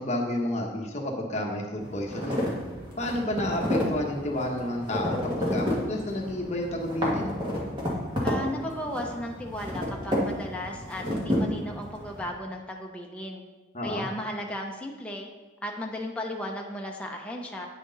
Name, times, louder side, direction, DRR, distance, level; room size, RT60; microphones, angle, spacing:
voice 1, 0.0-2.5 3.0-7.3 13.7-14.0, left 1 dB, 40° left, 0 dB, 1.1 m, -30 dB
sound 1, 1.8-12.3, left 1 dB, 25° right, 1.7 m, -31 dB
voice 2, 8.2-13.4 13.8-15.3 15.6-17.7, left 1 dB, 5° left, 0 dB, 0.6 m, -35 dB
9.2 x 6.3 x 4.0 m, 1.2 s
head